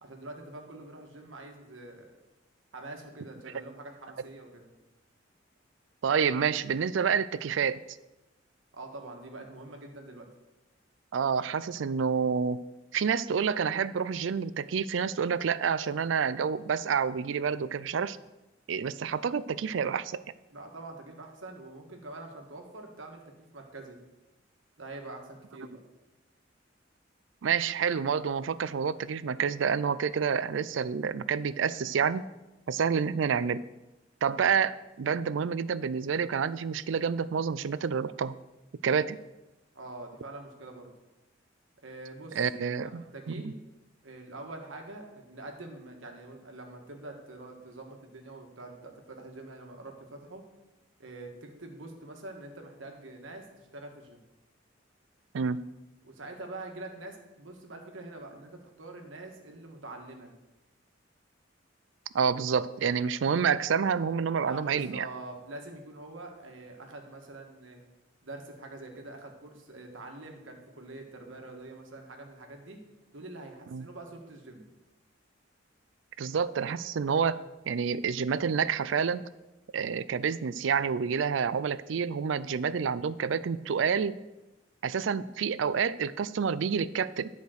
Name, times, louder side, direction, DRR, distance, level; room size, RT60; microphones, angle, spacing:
voice 1, 0.0-2.2 2.7-4.7 8.7-10.3 20.5-23.2 23.5-24.0 24.8-25.8 39.7-40.9 41.8-42.5 42.8-43.6 44.0-50.4 51.0-54.2 56.0-60.3 64.4-67.8 68.2-72.8 73.1-74.6, right 2 dB, 90° right, 3 dB, 1.5 m, -45 dB
voice 2, 6.0-7.8 11.1-12.6 12.9-18.2 18.7-20.2 27.4-32.2 32.7-33.6 34.2-38.3 38.8-39.2 42.3-43.0 43.4-43.5 55.3-55.6 62.1-65.1 73.7-73.8 76.2-79.2 79.7-84.2 84.8-87.3, right 6 dB, 75° right, 17 dB, 0.4 m, -28 dB
10.5 x 5.1 x 6.4 m, 1.0 s
head